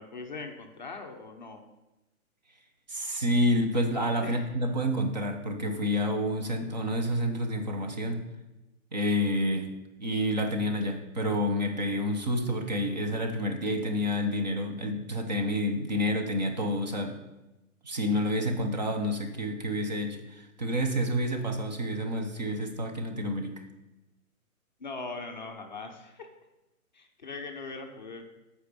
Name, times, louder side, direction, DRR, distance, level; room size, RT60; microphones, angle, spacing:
voice 1, 0.0-1.6 4.2-4.5 24.8-26.3 26.9-28.2, left 3 dB, 30° left, 3 dB, 0.7 m, -40 dB
voice 2, 2.9-8.2 8.9-17.2 17.8-23.6, equal, 30° right, 4 dB, 0.7 m, -29 dB
8.4 x 4.9 x 6.7 m, 0.99 s
hypercardioid pair, 170°, 44 cm